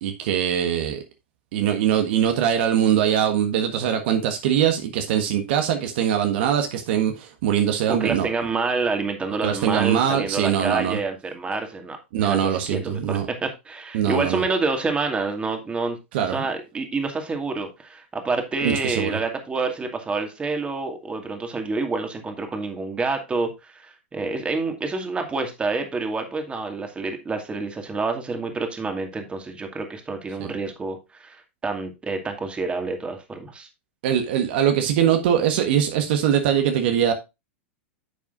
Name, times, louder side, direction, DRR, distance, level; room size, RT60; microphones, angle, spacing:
voice 1, 0.0-1.0 1.5-8.3 9.4-11.0 12.1-13.3 13.9-14.4 16.1-16.5 18.6-19.2 30.4-30.5 34.0-37.1, right 9 dB, 60° right, 1.5 m, -22 dB
voice 2, 7.9-33.7, right 3 dB, 15° right, 2.2 m, -28 dB
10.0 x 7.2 x 2.5 m
hypercardioid pair, 100°, 7 cm